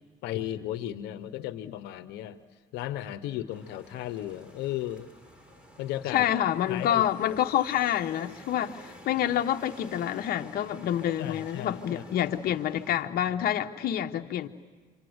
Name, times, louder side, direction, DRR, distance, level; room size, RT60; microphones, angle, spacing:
voice 1, 0.2-2.4 2.7-5.1 5.8-6.3 6.7-7.0 11.2-12.1, left 13 dB, 90° left, 1.0 m, -35 dB
sound 1, 3.5-13.0, equal, 5° right, 4.3 m, -51 dB
voice 2, 6.1-14.5, left 11 dB, 65° left, 1.1 m, -27 dB
27.5 x 26.0 x 8.0 m
cardioid pair, 110°, 17 cm